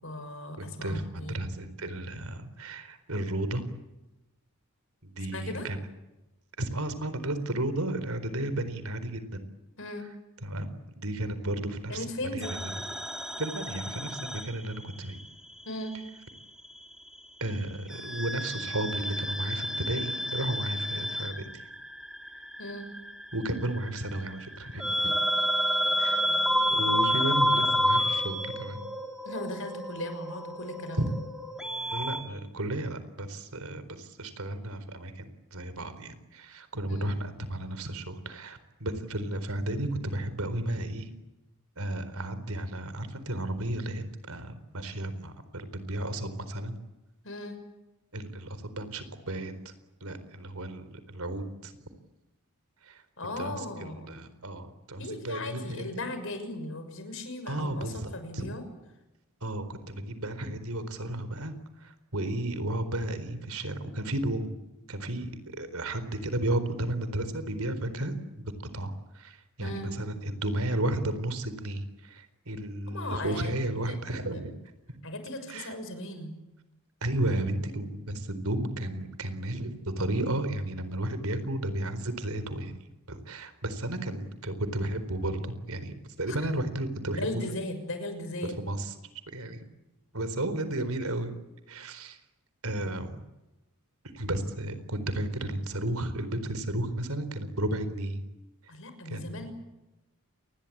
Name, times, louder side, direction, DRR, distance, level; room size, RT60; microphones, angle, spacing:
voice 1, 0.0-1.4 5.3-5.7 9.8-10.1 11.9-12.5 15.6-15.9 22.6-22.9 29.2-31.1 36.9-37.1 47.2-47.6 53.2-54.2 55.0-58.6 69.6-69.9 72.9-74.5 75.0-76.3 86.3-86.4 87.1-88.6 98.7-99.5, left 1 dB, 60° left, 8 dB, 6.5 m, -37 dB
voice 2, 0.6-3.6 5.0-5.8 6.6-9.4 10.4-12.0 12.3-12.7 13.4-15.2 17.4-21.6 23.3-25.1 26.0-26.2 26.7-28.9 31.0-31.1 31.9-41.1 41.8-46.8 48.1-49.7 50.0-51.7 52.8-53.0 53.4-55.8 57.5-58.5 59.4-61.5 61.8-64.6 64.9-65.3 65.6-74.5 75.5-75.7 77.0-82.8 83.1-87.4 88.4-88.9 89.3-89.6 90.1-91.3 91.7-92.2 92.6-93.2 94.0-98.2 99.1-99.4, right 1 dB, 75° right, 12 dB, 4.3 m, -33 dB
sound 1, 12.4-15.3 15.5-16.7 17.9-32.2, equal, 5° right, 2.6 m, -30 dB
28.0 x 21.5 x 8.8 m, 0.98 s
head